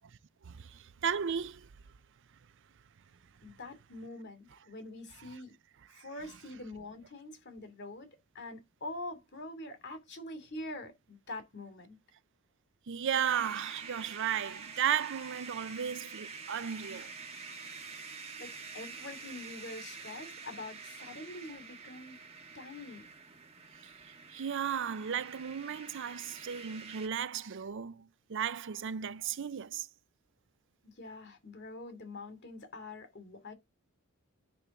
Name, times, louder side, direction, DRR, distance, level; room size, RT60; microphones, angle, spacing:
voice 1, 0.4-1.7 5.9-6.0 12.9-17.1 24.3-29.9, right 8 dB, 60° right, 0.5 m, -35 dB
voice 2, 3.4-5.5 6.0-8.1 8.3-12.0 18.4-22.2 22.5-23.1 30.8-33.5, left 2 dB, 55° left, 2.6 m, -45 dB
sound 1, 13.2-27.1, right 5 dB, 30° right, 1.5 m, -47 dB
9.9 x 3.4 x 7.0 m
head